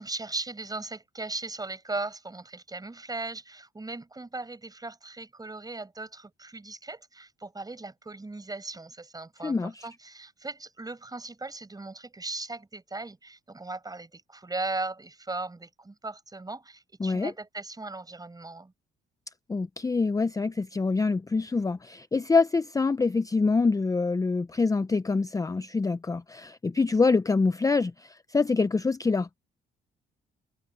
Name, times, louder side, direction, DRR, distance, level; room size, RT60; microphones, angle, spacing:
voice 1, 0.0-18.7, right 3 dB, 20° right, 5.1 m, -38 dB
voice 2, 9.4-9.9 17.0-17.3 19.5-29.4, left 4 dB, 15° left, 0.5 m, -25 dB
cardioid pair, 90°, 20 cm